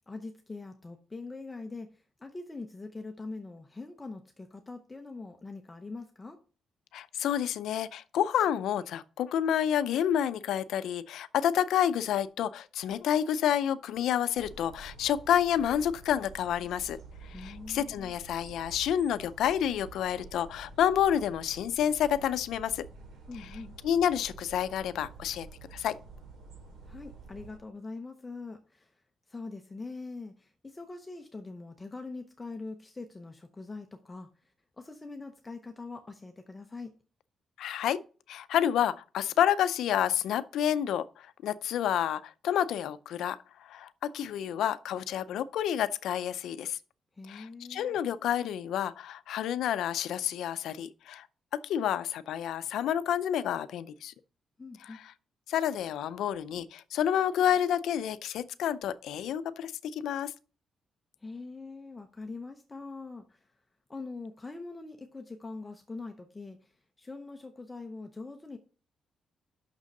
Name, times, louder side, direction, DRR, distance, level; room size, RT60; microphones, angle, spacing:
voice 1, 0.1-6.4 17.3-18.1 23.3-23.7 26.8-29.0 29.3-37.0 47.1-48.0 54.6-55.0 61.2-63.6 63.9-68.6, left 3 dB, 15° left, 0.7 m, -43 dB
voice 2, 6.9-17.0 17.2-22.8 23.8-26.0 37.6-38.0 38.3-46.8 47.3-51.3 51.5-54.1 55.5-60.3, left 10 dB, 85° left, 0.5 m, -29 dB
sound 1, 14.4-27.6, right 3 dB, 75° right, 2.8 m, -49 dB
6.4 x 6.1 x 5.3 m
cardioid pair, 160°, 0 cm